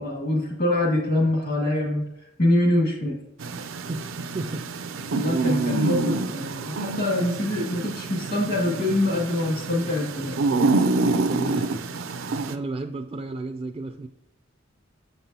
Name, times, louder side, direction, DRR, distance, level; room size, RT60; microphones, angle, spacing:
voice 1, 0.0-3.2 5.1-10.4, left 1 dB, 50° left, -2 dB, 2.2 m, -24 dB
sound 1, 3.4-12.5, right 3 dB, 90° right, 0.5 m, -27 dB
voice 2, 3.9-4.6 11.0-11.9 12.5-14.1, right 2 dB, 25° right, 5 dB, 0.3 m, -32 dB
7.3 x 5.3 x 2.8 m, 0.91 s
head